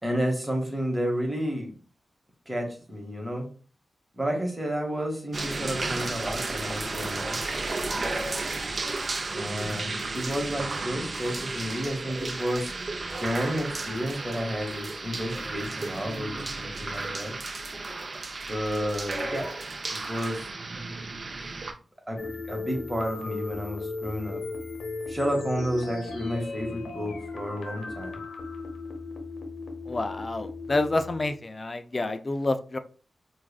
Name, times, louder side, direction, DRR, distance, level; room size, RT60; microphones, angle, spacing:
voice 1, 0.0-1.7 2.5-3.5 4.1-7.4 9.3-12.7 13.2-17.3 18.5-19.5 20.0-20.5 21.3-21.4 22.1-24.4 25.1-28.2, equal, 10° right, 0 dB, 1.2 m, -31 dB
sound 1, 5.3-21.7, right 3 dB, 50° right, 0.5 m, -33 dB
sound 2, 22.2-31.5, left 3 dB, 90° left, 0.7 m, -37 dB
voice 2, 29.9-32.8, left 2 dB, 35° left, 9 dB, 0.4 m, -28 dB
4.7 x 2.4 x 2.3 m, 0.38 s
wide cardioid pair, 80°, 0 cm